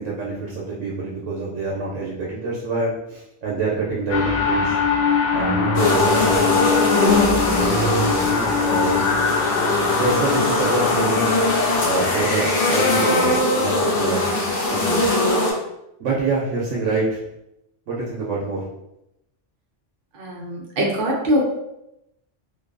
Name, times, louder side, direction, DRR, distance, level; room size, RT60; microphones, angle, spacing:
voice 1, 0.0-4.8 5.3-6.6 7.5-9.0 10.0-11.3 11.8-15.1 16.0-17.2 17.9-18.6, right 3 dB, 85° right, -4 dB, 0.9 m, -26 dB
sound 1, 4.1-13.4, left 4 dB, 55° left, 0.6 m, -22 dB
sound 2, 5.7-15.5, left 2 dB, 75° left, 1.0 m, -21 dB
voice 2, 20.1-21.6, equal, 55° right, -3 dB, 0.7 m, -22 dB
2.6 x 2.2 x 2.3 m, 0.85 s
omnidirectional pair, 1.2 m